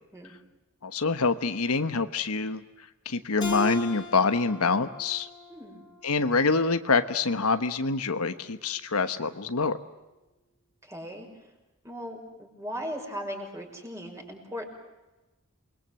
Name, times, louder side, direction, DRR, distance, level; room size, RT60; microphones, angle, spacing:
voice 1, 0.8-2.6 3.0-5.3 6.0-9.8, left 4 dB, 75° left, 9 dB, 1.2 m, -26 dB
Keyboard (musical), 3.4-6.6, equal, 20° left, 3.9 m, -39 dB
voice 2, 5.5-5.8 10.8-11.3 11.8-14.6, equal, 15° right, 2 dB, 5.8 m, -38 dB
28.5 x 22.0 x 7.8 m, 1.1 s
head